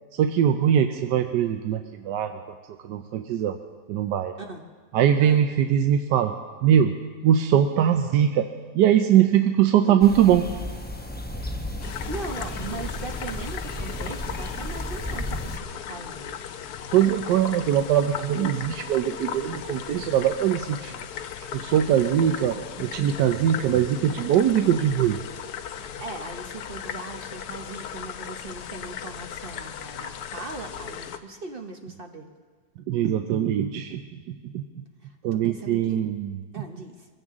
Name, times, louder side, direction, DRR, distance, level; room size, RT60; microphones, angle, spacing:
voice 1, 0.1-2.4 2.8-3.6 3.9-4.3 4.9-6.3 6.6-7.0 7.2-10.4 16.9-21.0 21.5-25.2 32.9-34.6 35.2-36.4, right 10 dB, 80° right, 6 dB, 1.2 m, -22 dB
sound 1, 10.0-15.6, left 1 dB, 15° left, 0.4 m, -34 dB
sound 2, 11.8-31.2, left 8 dB, 70° left, 1.2 m, -37 dB
voice 2, 12.1-16.4 25.7-32.3 35.0-36.0 36.5-37.1, right 3 dB, 40° right, 4 dB, 0.9 m, -39 dB
22.0 x 16.0 x 3.7 m, 1.5 s
omnidirectional pair, 1.9 m